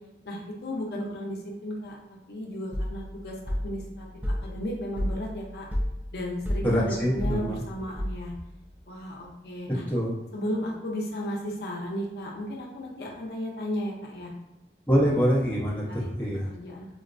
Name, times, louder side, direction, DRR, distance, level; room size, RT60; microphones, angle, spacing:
voice 1, 0.2-2.0 2.3-3.3 3.6-4.1 4.4-5.7 6.1-8.4 8.9-9.8 10.3-14.3 15.9-16.1 16.5-16.9, equal, 70° left, -2 dB, 0.5 m, -34 dB
sound 1, 2.7-8.5, equal, 10° right, 0.3 m, -32 dB
voice 2, 6.6-7.6 9.9-10.2 14.9-16.5, equal, 10° left, -8 dB, 0.7 m, -25 dB
3.8 x 2.1 x 2.5 m, 0.92 s
head